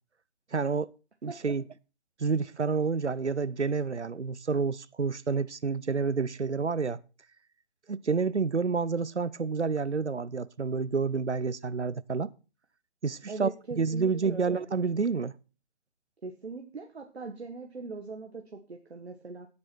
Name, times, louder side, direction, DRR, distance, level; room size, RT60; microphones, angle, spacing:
voice 1, 0.5-0.9 1.2-1.6 2.2-7.0 7.9-12.3 13.0-13.5 13.8-15.3, right 5 dB, 85° right, 0.7 m, -29 dB
voice 2, 13.3-14.7 16.2-19.5, right 4 dB, 65° right, 1.7 m, -41 dB
16.5 x 8.8 x 4.5 m
figure-of-eight pair, 135°, 33 cm